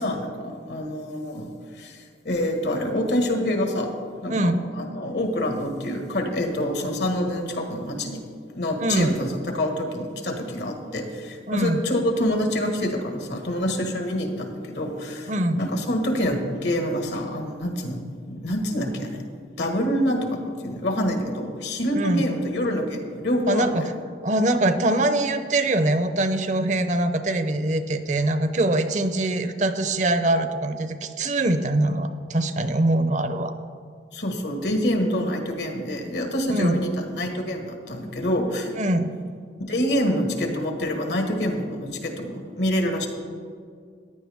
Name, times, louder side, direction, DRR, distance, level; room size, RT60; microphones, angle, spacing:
voice 1, 0.0-3.9 4.2-8.2 8.5-18.0 18.3-19.2 19.6-23.8 34.1-38.7 39.7-43.1, equal, 75° left, 3 dB, 1.6 m, -26 dB
voice 2, 4.3-4.6 8.8-9.1 11.5-11.9 15.3-15.6 21.9-22.2 23.5-23.8 24.2-33.5 36.5-36.8 38.8-39.1, right 1 dB, 45° right, 9 dB, 0.6 m, -23 dB
15.0 x 10.0 x 3.5 m, 2.1 s
head